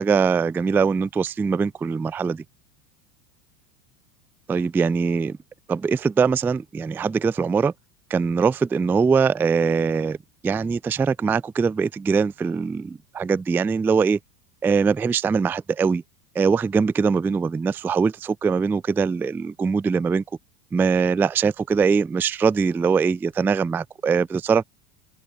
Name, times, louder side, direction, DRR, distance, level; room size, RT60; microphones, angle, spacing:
voice 1, 0.0-2.4 4.5-5.4 5.7-7.7 8.1-10.2 10.4-14.2 14.6-16.0 16.4-20.2 20.7-24.6, right 5 dB, 5° right, 0.3 m, -22 dB
supercardioid pair, 155°, 47 cm